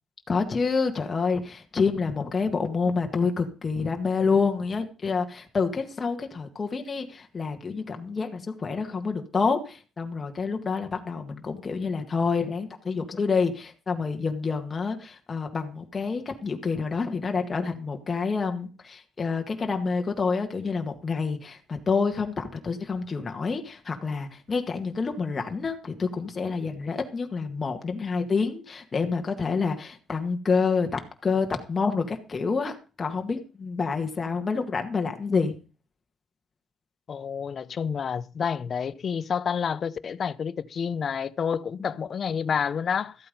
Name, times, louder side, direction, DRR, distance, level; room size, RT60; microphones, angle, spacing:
voice 1, 0.3-35.5 41.8-41.9, left 4 dB, 30° left, 1.9 m, -28 dB
voice 2, 37.1-43.2, left 7 dB, 45° left, 0.6 m, -29 dB
14.0 x 8.6 x 5.4 m
cardioid pair, 105°, 0 cm